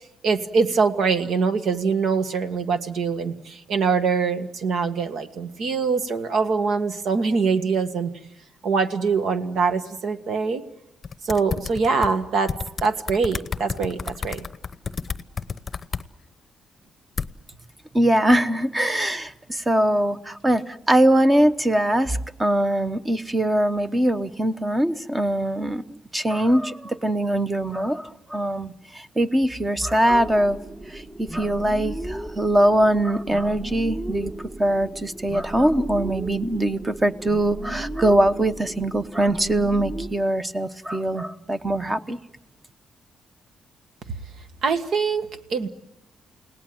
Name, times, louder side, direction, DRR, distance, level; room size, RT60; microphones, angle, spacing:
voice 1, 0.2-8.1 8.6-10.6 11.2-12.5 12.8-14.5 44.6-45.7, right 5 dB, 65° right, 8 dB, 1.7 m, -23 dB
sound 1, 11.0-12.1 12.5-16.0 17.2-17.3, left 5 dB, 30° left, 0.8 m, -30 dB
voice 2, 17.9-30.6 30.9-42.2, right 1 dB, 15° right, 10 dB, 1.0 m, -22 dB
sound 2, 30.1-40.1, right 1 dB, 35° right, 3.9 m, -35 dB
29.5 x 18.0 x 7.8 m, 0.88 s
cardioid pair, 135°, 0 cm